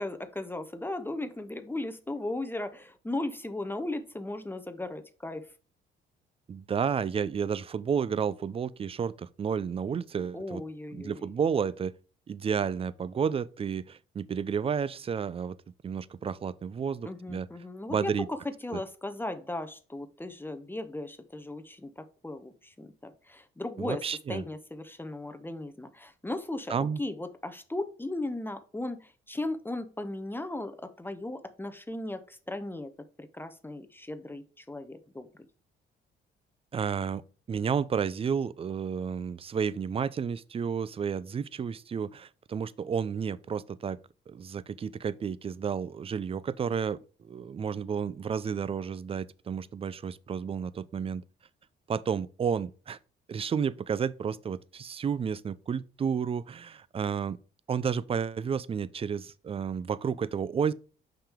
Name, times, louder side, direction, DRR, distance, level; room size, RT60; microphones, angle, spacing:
voice 1, 0.0-5.5 10.3-11.3 17.0-24.0 24.3-35.3, left 2 dB, 10° left, 0.7 m, -37 dB
voice 2, 6.5-10.6 10.9-11.9 12.3-15.6 15.8-17.5 17.9-18.3 18.7-18.8 23.8-24.4 26.7-27.0 36.7-37.2 37.5-44.0 44.3-51.2 51.9-53.0 53.3-57.4 57.7-60.7, right 7 dB, 30° right, 0.4 m, -31 dB
5.9 x 5.0 x 3.6 m
cardioid pair, 90°, 20 cm